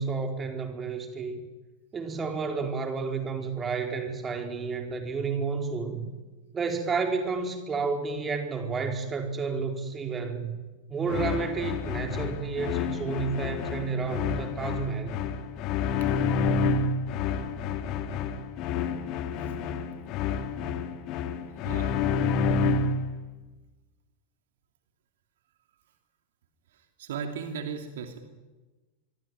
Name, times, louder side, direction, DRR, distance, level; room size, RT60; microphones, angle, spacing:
voice 1, 0.0-1.4 1.9-6.1 6.5-10.5 10.9-15.1, right 4 dB, 20° right, 4 dB, 4.5 m, -31 dB
sound 1, 11.1-23.1, left 5 dB, 40° left, 2.4 m, -29 dB
voice 2, 21.6-22.0 26.7-28.2, right 6 dB, 60° right, 6 dB, 2.7 m, -37 dB
26.5 x 23.5 x 9.3 m, 1.2 s
figure-of-eight pair, 90°, 0 cm